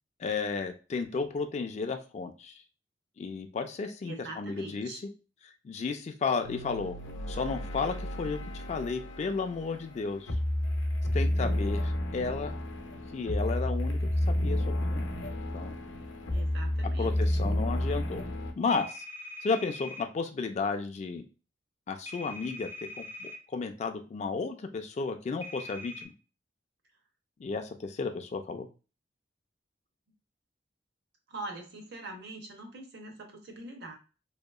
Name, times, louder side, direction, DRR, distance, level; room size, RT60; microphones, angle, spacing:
voice 1, 0.2-2.6 3.2-4.9 5.6-7.0 7.3-10.3 11.1-12.5 13.1-14.0 14.3-15.1 15.5-15.8 17.0-18.2 18.6-19.0 19.4-21.2 21.9-22.7 23.0-26.1 27.4-28.7, left 4 dB, 40° left, 7 dB, 0.3 m, -33 dB
voice 2, 4.1-5.0 16.3-17.2 31.3-34.0, right 2 dB, 65° right, 3 dB, 0.7 m, -43 dB
sound 1, 6.4-18.5, left 1 dB, 85° left, 0.6 m, -31 dB
sound 2, 18.7-20.0 22.1-23.4 25.4-26.0, left 1 dB, 15° right, 0.5 m, -42 dB
2.8 x 2.2 x 2.3 m, 0.33 s
head